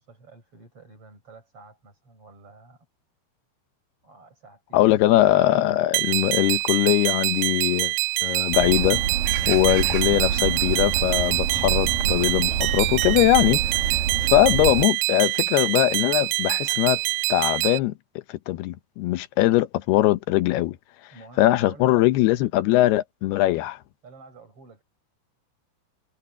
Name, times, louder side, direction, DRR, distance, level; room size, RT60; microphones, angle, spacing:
voice 1, 0.0-2.9 4.0-5.0 21.1-22.4 23.5-23.8 24.0-24.8, right 3 dB, 30° right, 8.4 m, -49 dB
voice 2, 4.7-7.9 8.2-9.0 9.5-17.0 17.3-17.9 18.3-20.8 21.4-23.8, left 15 dB, 75° left, 2.5 m, -21 dB
sound 1, 5.9-17.8, right 22 dB, 90° right, 2.3 m, -25 dB
sound 2, 8.5-14.8, right 8 dB, 60° right, 3.0 m, -27 dB
omnidirectional pair, 5.4 m